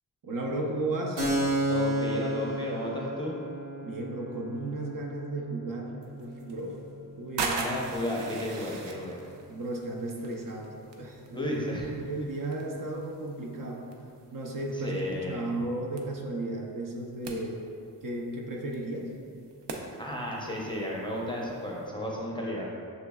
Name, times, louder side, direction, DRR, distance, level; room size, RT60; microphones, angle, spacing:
voice 1, 0.2-1.3 3.8-5.9 6.2-6.8 7.2-7.6 9.5-10.7 11.0-13.8 14.3-17.6 18.0-19.1, right 2 dB, 50° right, 0 dB, 0.6 m, -34 dB
Keyboard (musical), 1.2-8.5, right 1 dB, 70° right, 1.3 m, -33 dB
voice 2, 1.7-3.4 7.6-9.2 11.3-11.9 14.7-15.4 20.0-22.7, left 1 dB, 10° left, -3 dB, 0.6 m, -33 dB
sound 1, 6.0-21.9, right 4 dB, 90° right, 0.6 m, -42 dB
6.7 x 3.1 x 2.3 m, 2.4 s
wide cardioid pair, 100°, 41 cm